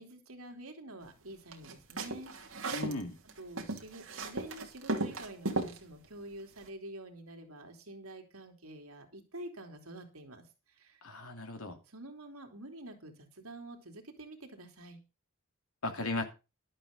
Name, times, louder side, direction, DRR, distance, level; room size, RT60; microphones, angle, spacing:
voice 1, 0.0-2.7 3.4-11.0 11.9-15.0, right 1 dB, 75° right, 3.2 m, -48 dB
sound 1, 1.5-3.0 3.3-5.8, right 2 dB, 60° right, 2.8 m, -35 dB
voice 2, 2.7-3.2 11.0-11.8 15.8-16.2, left 2 dB, 75° left, 2.7 m, -36 dB
12.0 x 8.8 x 5.3 m
head